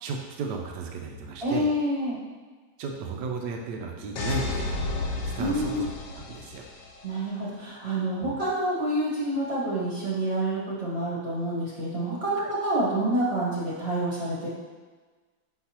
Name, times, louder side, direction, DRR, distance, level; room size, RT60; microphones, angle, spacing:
voice 1, 0.0-1.7 2.8-4.8 5.4-5.9 6.1-6.7 8.2-8.3 12.4-12.5, right 4 dB, 75° right, 1 dB, 1.2 m, -34 dB
voice 2, 1.4-2.2 5.4-5.8 7.0-14.5, right 1 dB, 40° right, -7 dB, 1.3 m, -28 dB
sound 1, 4.2-7.0, left 3 dB, 75° left, 1.4 m, -32 dB
5.9 x 5.5 x 2.9 m, 1.4 s
omnidirectional pair, 2.0 m